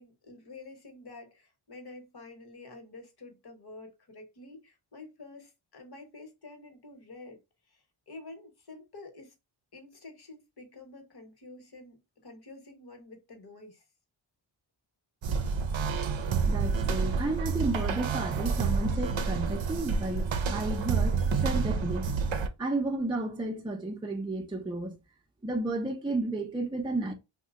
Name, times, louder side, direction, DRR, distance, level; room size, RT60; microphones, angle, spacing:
voice 1, 0.0-7.4 7.7-9.3 9.7-12.0 12.2-13.8, left 2 dB, 50° left, 1.1 m, -49 dB
sound 1, 15.2-22.5, right 5 dB, 70° right, 0.6 m, -29 dB
voice 2, 16.5-22.1 22.6-25.0 25.4-27.1, right 2 dB, 10° right, 0.5 m, -32 dB
2.7 x 2.2 x 3.5 m
cardioid pair, 60°, 49 cm